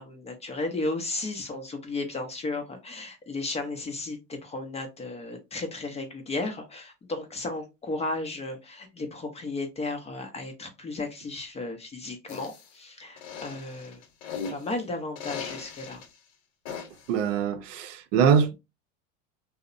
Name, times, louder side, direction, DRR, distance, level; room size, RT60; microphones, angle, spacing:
voice 1, 0.0-14.0 14.5-16.0, left 2 dB, 15° left, 0.4 m, -34 dB
sound 1, 12.3-12.7 13.2-14.7 15.2-16.1 16.7-17.1, left 6 dB, 60° left, 0.9 m, -38 dB
voice 2, 17.1-18.6, right 7 dB, 70° right, 0.6 m, -23 dB
2.7 x 2.0 x 2.4 m
supercardioid pair, 110°, 38 cm